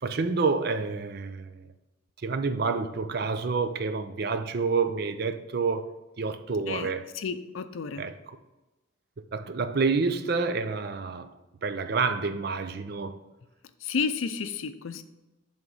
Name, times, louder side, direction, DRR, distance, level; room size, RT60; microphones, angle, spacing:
voice 1, 0.0-1.6 2.2-7.1 8.0-8.4 9.3-11.3 11.6-13.2, right 4 dB, 50° right, 0.5 m, -28 dB
voice 2, 7.1-8.1 13.8-15.0, left 5 dB, 80° left, 0.5 m, -31 dB
7.9 x 3.7 x 5.5 m
head